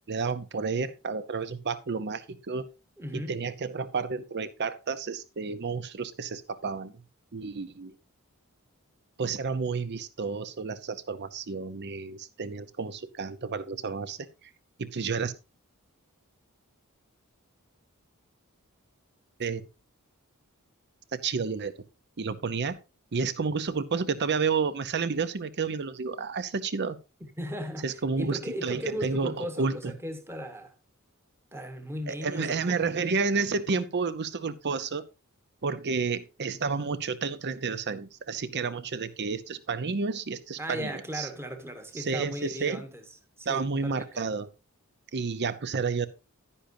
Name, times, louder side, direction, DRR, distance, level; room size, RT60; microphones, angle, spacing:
voice 1, 0.1-2.7 3.1-6.9 7.3-7.9 9.2-14.2 14.8-15.3 19.4-19.7 21.1-21.7 22.2-22.8 23.1-27.0 27.8-29.8 32.1-35.0 35.6-41.3 42.0-42.8 43.5-44.5 45.1-46.1, right 4 dB, 50° right, 0.7 m, -31 dB
voice 2, 3.0-3.3 27.4-27.9 28.2-30.7 31.5-32.9 40.6-43.0 43.4-44.3, equal, 10° right, 1.2 m, -37 dB
10.5 x 9.9 x 2.7 m
head